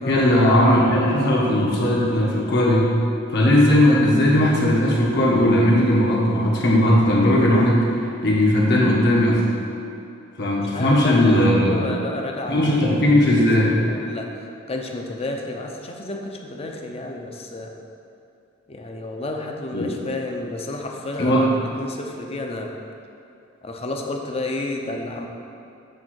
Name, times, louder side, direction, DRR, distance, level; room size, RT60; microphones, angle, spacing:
voice 1, 0.1-2.9 3.3-7.8 8.2-9.4 10.4-11.8 12.5-13.7 19.7-19.9 21.2-21.5, left 1 dB, 60° left, -4 dB, 1.6 m, -17 dB
voice 2, 10.7-13.5 13.8-14.3 14.7-17.7 18.7-22.7 23.6-25.3, left 2 dB, 30° left, 1 dB, 0.7 m, -31 dB
8.6 x 3.8 x 6.4 m, 2.7 s
head